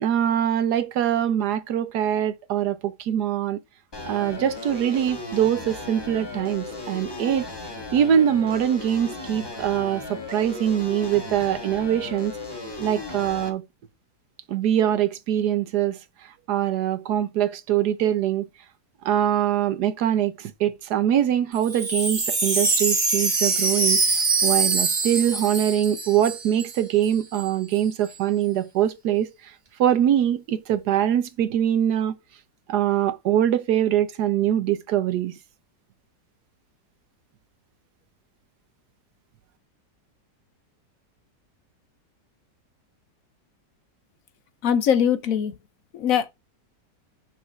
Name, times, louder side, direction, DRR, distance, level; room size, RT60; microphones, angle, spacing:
voice 1, 0.0-3.6 4.1-7.5 7.9-12.3 12.8-13.6 14.5-16.0 16.5-18.5 19.0-24.0 24.4-29.3 29.8-32.1 32.7-35.3, right 10 dB, 70° right, 1.2 m, -23 dB
sound 1, 3.9-13.5, left 2 dB, 15° left, 1.4 m, -36 dB
Wind chime, 21.6-26.8 27.0-27.1 27.3-27.8, right 3 dB, 30° right, 1.2 m, -24 dB
voice 2, 44.6-45.6 45.9-46.3, left 8 dB, 60° left, 1.0 m, -21 dB
5.8 x 4.0 x 4.5 m
omnidirectional pair, 1.9 m